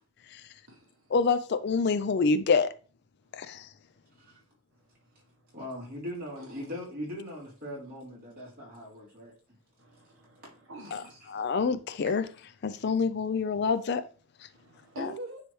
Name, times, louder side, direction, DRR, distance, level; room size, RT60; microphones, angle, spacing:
voice 1, 1.1-2.7 3.4-3.7 10.9-11.0 11.3-12.2 12.6-14.0 15.0-15.1, left 4 dB, 50° left, 0.4 m, -26 dB
voice 2, 5.5-9.3 10.4-10.5, left 1 dB, 40° right, 3.2 m, -40 dB
voice 3, 6.4-6.8 9.8-11.1 12.0-12.2 12.7-12.8 14.6-15.4, right 2 dB, 65° right, 1.2 m, -45 dB
9.7 x 3.3 x 3.1 m
head